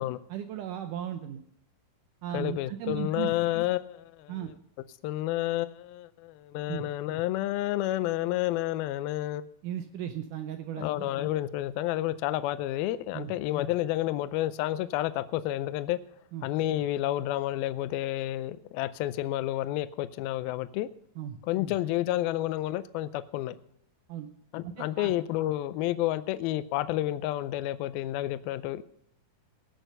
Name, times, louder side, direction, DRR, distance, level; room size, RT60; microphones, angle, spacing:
voice 1, 0.3-1.4 2.2-3.3 4.3-4.5 6.7-6.8 9.6-11.1 13.1-13.3 16.3-16.5 21.2-21.4 24.1-24.3 24.6-25.1, right 10 dB, 85° right, 8 dB, 1.8 m, -36 dB
voice 2, 2.3-4.3 5.0-9.5 10.8-16.0 16.4-20.9 21.5-23.6 24.5-28.8, left 14 dB, 80° left, 13 dB, 2.3 m, -30 dB
18.5 x 6.5 x 6.6 m, 0.70 s
omnidirectional pair, 4.6 m